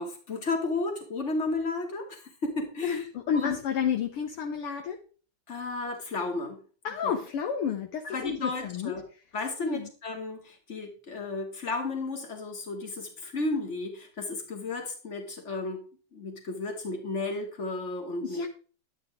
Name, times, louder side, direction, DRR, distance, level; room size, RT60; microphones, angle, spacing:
voice 1, 0.0-3.1 3.3-3.6 5.5-6.6 7.0-7.2 8.0-9.0 9.3-15.8 16.1-18.4, left 3 dB, 25° left, 2 dB, 2.7 m, -33 dB
voice 2, 2.8-5.0 6.8-8.9 9.6-9.9 18.2-18.5, left 7 dB, 60° left, 4 dB, 1.7 m, -31 dB
12.5 x 10.5 x 3.7 m, 0.39 s
omnidirectional pair, 3.4 m